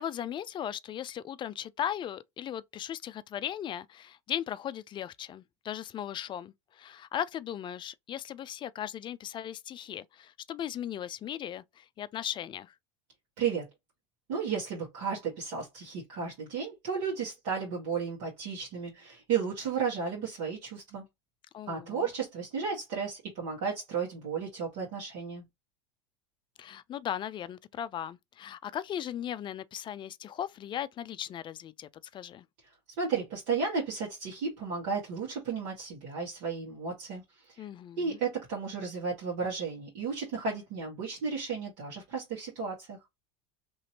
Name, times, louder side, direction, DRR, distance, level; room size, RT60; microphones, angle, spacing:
voice 1, 0.0-12.7 21.5-22.1 26.6-32.4 37.6-38.2, left 10 dB, 30° left, 0.3 m, -37 dB
voice 2, 14.3-21.0 21.7-25.4 32.6-32.7 33.0-37.7 38.0-43.0, right 5 dB, 65° right, 1.5 m, -33 dB
3.0 x 2.7 x 2.8 m
hypercardioid pair, 90°, 16 cm